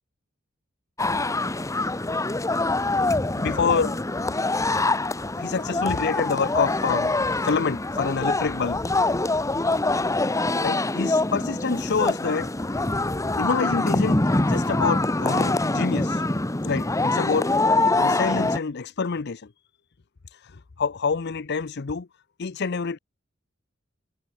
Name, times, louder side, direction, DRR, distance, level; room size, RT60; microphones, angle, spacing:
sound 1, 1.0-18.6, left 2 dB, 15° left, 1.0 m, -24 dB
voice 1, 3.4-4.0 5.4-8.8 10.6-12.5 13.4-16.2 16.6-17.6 18.0-19.5 20.3-22.1 22.4-23.0, left 5 dB, 55° left, 0.6 m, -27 dB
head